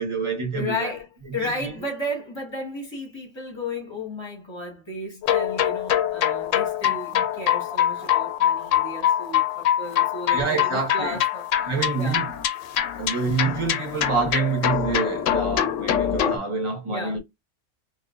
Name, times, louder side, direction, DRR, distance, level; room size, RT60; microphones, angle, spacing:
voice 1, 0.0-0.9 1.4-1.7 6.8-7.2 8.0-8.1 10.3-11.2 11.7-12.3 13.0-17.2, right 4 dB, 25° right, 1.4 m, -27 dB
voice 2, 0.5-12.2 16.9-17.2, left 1 dB, 20° left, 1.3 m, -34 dB
sound 1, 5.2-16.4, left 10 dB, 80° left, 1.0 m, -24 dB
3.8 x 2.4 x 2.4 m
omnidirectional pair, 1.3 m